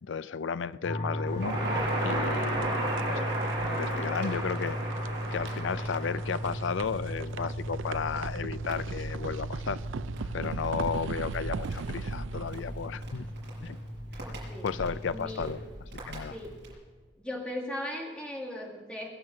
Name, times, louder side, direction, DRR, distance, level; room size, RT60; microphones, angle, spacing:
voice 1, 0.0-3.3 3.6-4.8 5.3-9.8 10.3-13.3 13.6-13.8 14.6-15.6 16.0-16.4, left 6 dB, 80° left, 16 dB, 0.5 m, -34 dB
sound 1, 0.8-15.7, equal, 35° left, 1.1 m, -37 dB
Crackle, 1.3-16.7, right 1 dB, 65° right, 5.7 m, -37 dB
sound 2, 2.0-14.1, right 5 dB, 85° right, 0.4 m, -40 dB
voice 2, 14.1-14.7 15.1-15.6 16.3-16.6 17.2-19.1, left 1 dB, 5° left, -1 dB, 2.1 m, -38 dB
21.5 x 7.4 x 6.8 m, 1.4 s
head